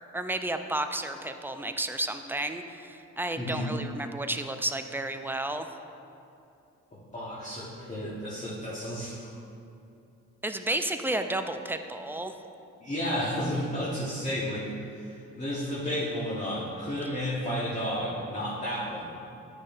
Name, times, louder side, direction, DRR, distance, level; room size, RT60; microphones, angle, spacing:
voice 1, 0.1-5.7 10.4-12.3, right 1 dB, 5° right, 7 dB, 0.3 m, -32 dB
voice 2, 3.4-3.7 6.9-9.3 12.8-14.7 14.9-19.3, equal, 25° left, -7 dB, 1.2 m, -32 dB
10.0 x 6.4 x 2.5 m, 2.7 s
cardioid pair, 90°, 30 cm